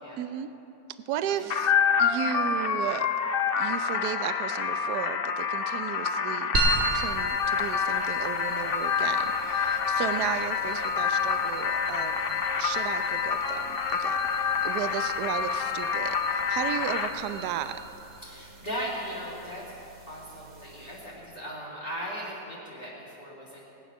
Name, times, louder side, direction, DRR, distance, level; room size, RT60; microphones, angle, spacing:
voice 1, 0.2-0.5 1.1-1.7 2.0-3.1 3.6-6.5 6.9-17.8, right 10 dB, 75° right, 12 dB, 1.1 m, -34 dB
sound 1, 1.5-17.1, left 6 dB, 70° left, 0.5 m, -27 dB
sound 2, 6.5-21.2, right 2 dB, 40° right, 2.1 m, -36 dB
voice 2, 18.2-19.6 20.1-23.7, equal, 20° left, -10 dB, 3.1 m, -38 dB
20.0 x 9.3 x 6.1 m, 2.8 s
omnidirectional pair, 1.9 m